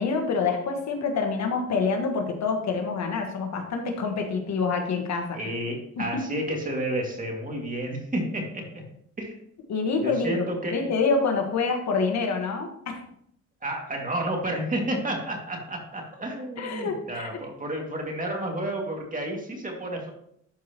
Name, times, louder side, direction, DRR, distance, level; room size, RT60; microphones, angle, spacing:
voice 1, 0.0-5.4 6.0-6.2 9.7-10.4 10.7-13.0 16.6-17.3, left 4 dB, 65° left, 4 dB, 1.5 m, -26 dB
voice 2, 5.3-8.8 9.2-9.4 10.0-10.9 13.6-20.1, right 1 dB, 25° right, 1 dB, 2.2 m, -31 dB
12.0 x 4.7 x 3.0 m, 0.71 s
cardioid pair, 90°, 30 cm